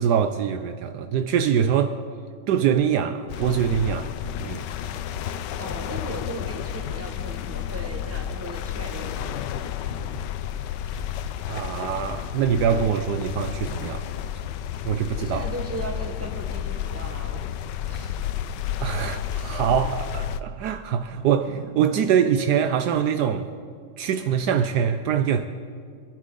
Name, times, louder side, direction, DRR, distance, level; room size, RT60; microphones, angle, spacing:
voice 1, 0.0-1.9 2.5-4.1 4.4-4.6 11.5-14.0 14.8-15.4 18.8-23.5 24.0-25.4, right 8 dB, 90° right, 0.8 m, -23 dB
sound 1, 3.3-20.4, left 10 dB, 75° left, 1.0 m, -31 dB
voice 2, 5.6-9.5 15.1-17.4 17.8-18.2, right 2 dB, 10° right, 1.0 m, -37 dB
25.5 x 11.0 x 3.8 m
omnidirectional pair, 2.4 m